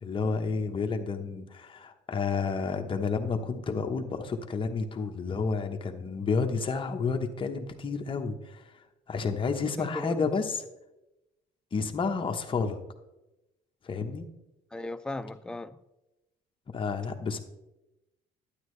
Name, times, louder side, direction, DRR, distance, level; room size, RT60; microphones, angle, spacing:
voice 1, 0.0-8.6 9.1-10.6 11.7-12.8 13.8-14.3 16.7-17.4, left 4 dB, 30° left, 1.0 m, -30 dB
voice 2, 9.8-10.3 14.7-15.8, left 2 dB, 5° left, 0.3 m, -36 dB
11.5 x 9.1 x 3.2 m
cardioid pair, 110°, 17 cm